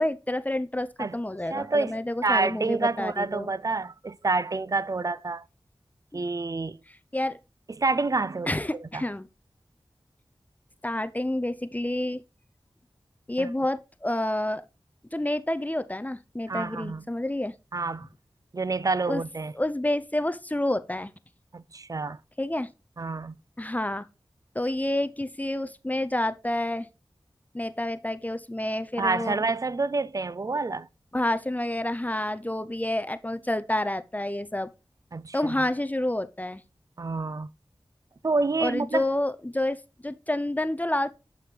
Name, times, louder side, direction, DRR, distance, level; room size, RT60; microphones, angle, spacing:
voice 1, 0.0-3.5 6.1-6.2 7.1-7.4 8.5-9.3 10.8-12.2 13.3-14.6 15.1-17.6 19.1-19.2 19.5-21.1 22.4-22.7 23.6-24.1 24.5-26.9 27.5-29.4 31.1-34.7 35.3-36.6 38.6-41.1, left 1 dB, 15° left, 0.5 m, -29 dB
voice 2, 1.5-5.4 6.1-6.8 7.8-8.5 8.9-9.0 13.4-13.5 16.5-17.1 17.7-18.1 18.5-19.5 21.5-22.2 23.0-23.4 29.0-30.9 35.1-35.7 37.0-37.5 38.2-39.0, right 3 dB, 40° right, 0.4 m, -28 dB
7.7 x 5.6 x 3.2 m
wide cardioid pair, 60°, 9 cm